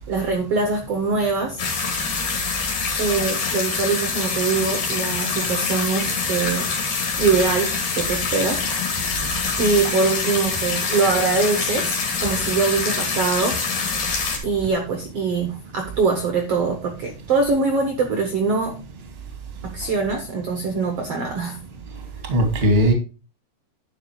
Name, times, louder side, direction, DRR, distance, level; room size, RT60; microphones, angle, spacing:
voice 1, 0.1-1.6 3.0-6.7 7.2-7.7 8.0-9.0 9.6-13.9 14.4-18.8 19.6-21.6, right 4 dB, 70° right, 4 dB, 1.4 m, -23 dB
sound 1, 1.6-14.4, left 4 dB, 55° left, 4.0 m, -25 dB
voice 2, 21.9-22.9, equal, 25° right, 4 dB, 1.4 m, -20 dB
11.0 x 5.3 x 4.7 m, 0.33 s
omnidirectional pair, 4.8 m